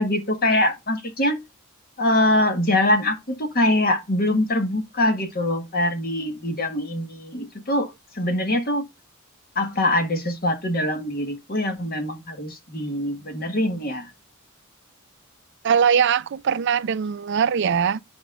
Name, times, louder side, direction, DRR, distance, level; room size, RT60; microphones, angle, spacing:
voice 1, 0.0-1.4 2.0-8.8 9.5-14.1, left 1 dB, 45° left, 1.6 m, -23 dB
voice 2, 15.6-18.0, right 7 dB, 55° right, 0.4 m, -21 dB
11.0 x 5.1 x 2.4 m
head